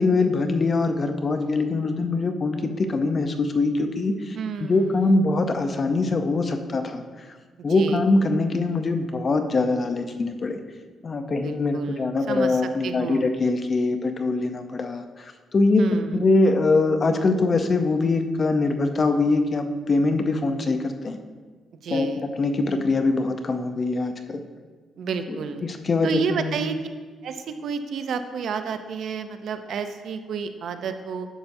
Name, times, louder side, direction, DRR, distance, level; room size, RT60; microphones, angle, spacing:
voice 1, 0.0-7.0 7.6-10.6 11.0-15.8 16.1-21.2 21.9-24.4 25.3-26.5, left 3 dB, 35° left, 7 dB, 0.6 m, -23 dB
voice 2, 4.3-5.2 7.7-8.0 11.3-13.3 15.8-16.3 21.8-22.2 25.0-25.7 26.0-26.8 27.2-31.3, right 6 dB, 65° right, 9 dB, 0.5 m, -31 dB
11.0 x 6.9 x 2.7 m, 1.4 s
cardioid pair, 120°, 0 cm